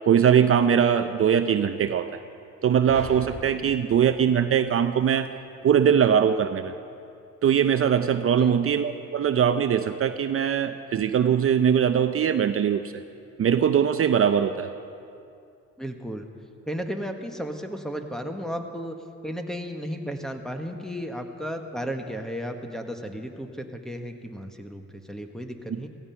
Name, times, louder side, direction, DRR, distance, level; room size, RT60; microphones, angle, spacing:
voice 1, 0.0-2.2 2.6-5.3 5.6-6.7 7.4-12.9 13.4-14.7, right 8 dB, 50° right, 9 dB, 0.6 m, -21 dB
sound 1, 2.9-5.3, left 2 dB, 40° left, 4.4 m, -42 dB
voice 2, 15.8-16.3 16.6-19.0 19.2-25.9, equal, ahead, 5 dB, 1.4 m, -34 dB
16.0 x 15.5 x 5.8 m, 2.5 s
cardioid pair, 90°, 30 cm